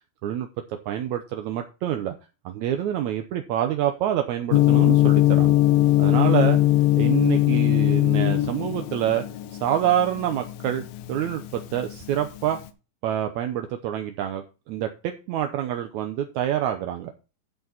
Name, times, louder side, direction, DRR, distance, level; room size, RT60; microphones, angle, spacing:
voice 1, 0.2-2.1 2.4-5.6 6.0-6.6 7.0-9.2 9.5-12.6 13.0-17.1, right 11 dB, 75° right, 6 dB, 1.7 m, -27 dB
Gong, 4.5-12.6, left 16 dB, 80° left, 2.6 m, -20 dB
10.5 x 7.1 x 4.0 m, 0.31 s
omnidirectional pair, 4.3 m